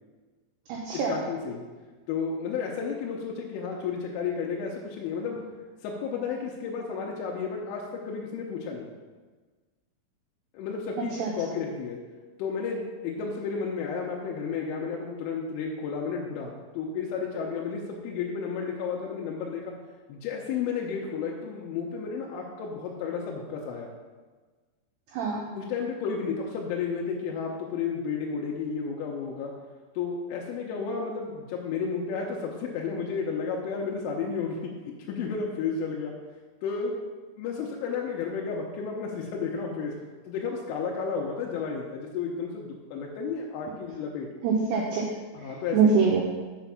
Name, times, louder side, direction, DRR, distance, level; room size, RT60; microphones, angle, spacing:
voice 1, 0.9-1.6 2.1-5.4 5.8-8.9 10.5-12.0 12.4-19.6 20.1-23.9 25.5-29.5 30.0-34.7 35.1-36.1 36.6-37.0 37.4-39.9 40.3-44.3 45.3-45.9, left 5 dB, 90° left, -2 dB, 3.3 m, -32 dB
voice 2, 44.4-45.0 45.7-46.2, right 5 dB, 80° right, -1 dB, 2.4 m, -23 dB
6.1 x 5.7 x 5.8 m, 1.4 s
omnidirectional pair, 5.7 m